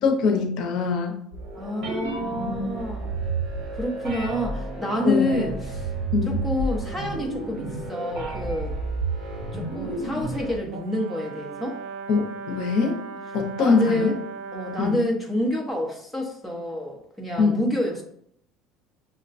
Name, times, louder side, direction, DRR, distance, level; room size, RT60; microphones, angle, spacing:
voice 1, 0.0-1.2 5.1-5.4 6.1-6.4 12.1-13.0 13.3-14.1 14.8-15.0 17.4-17.7, left 4 dB, 60° left, 4 dB, 0.6 m, -23 dB
sound 1, 1.3-10.6, right 3 dB, 50° right, 1.3 m, -31 dB
voice 2, 1.6-3.1 3.7-5.9 6.3-8.7 9.5-11.8 13.6-14.2 14.5-18.0, left 1 dB, ahead, -1 dB, 0.8 m, -28 dB
Brass instrument, 10.7-15.1, right 4 dB, 85° right, 0.4 m, -38 dB
6.4 x 2.1 x 2.5 m, 0.66 s
cardioid pair, 160°, 0 cm